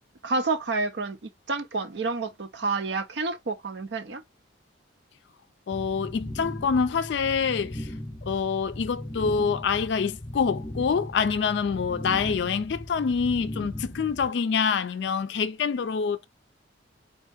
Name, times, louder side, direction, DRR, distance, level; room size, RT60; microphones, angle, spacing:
voice 1, 0.2-1.2 1.5-4.2, right 3 dB, 65° right, 0.6 m, -29 dB
voice 2, 5.7-7.9 8.2-16.3, left 6 dB, 65° left, 0.4 m, -26 dB
sound 1, 5.7-14.3, left 1 dB, 20° left, 0.7 m, -38 dB
4.1 x 2.7 x 3.4 m
head